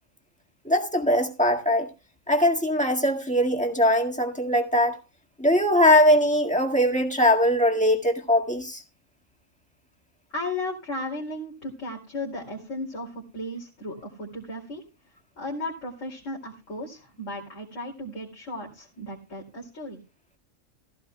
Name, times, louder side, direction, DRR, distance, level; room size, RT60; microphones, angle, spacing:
voice 1, 0.7-1.9 2.3-5.0 5.4-8.8, left 1 dB, 5° left, 1.8 m, -21 dB
voice 2, 10.3-14.8 15.4-20.0, left 1 dB, 75° left, 3.0 m, -35 dB
15.0 x 14.5 x 2.3 m
omnidirectional pair, 1.3 m